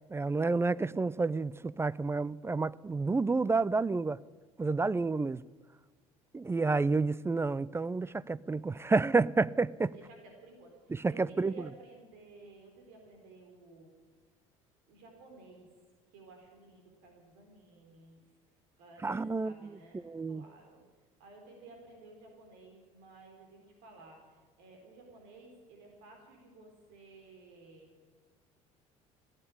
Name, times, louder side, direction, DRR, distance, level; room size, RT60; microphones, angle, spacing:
voice 1, 0.1-4.2 4.6-5.4 6.3-9.9 11.0-11.5 19.0-19.7 20.0-20.4, right 3 dB, 15° right, 0.4 m, -30 dB
voice 2, 9.9-13.9 14.9-15.7 16.1-18.2 18.8-20.8 21.2-27.9, right 3 dB, 70° right, 3.8 m, -55 dB
15.5 x 9.0 x 10.0 m
hypercardioid pair, 65°, 17 cm